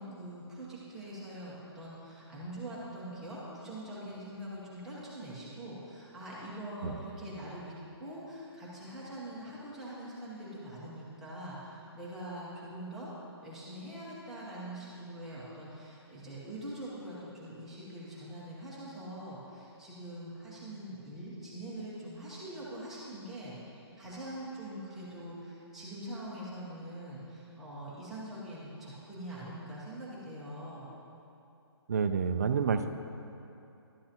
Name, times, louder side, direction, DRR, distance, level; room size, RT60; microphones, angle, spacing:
voice 1, 0.0-13.1 13.4-30.9, right 1 dB, ahead, -10 dB, 0.9 m, -43 dB
voice 2, 31.9-32.9, right 6 dB, 35° right, 8 dB, 0.3 m, -29 dB
12.0 x 7.5 x 2.9 m, 2.8 s
hypercardioid pair, 165°, 14 cm